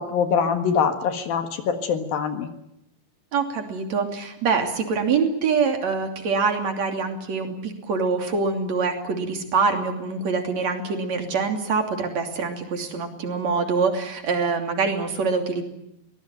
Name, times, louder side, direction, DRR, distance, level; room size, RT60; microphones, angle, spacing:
voice 1, 0.0-2.5, left 6 dB, 60° left, 8 dB, 3.2 m, -24 dB
voice 2, 3.3-15.7, right 5 dB, 45° right, 5 dB, 3.9 m, -25 dB
23.5 x 19.0 x 9.1 m, 0.80 s
omnidirectional pair, 4.9 m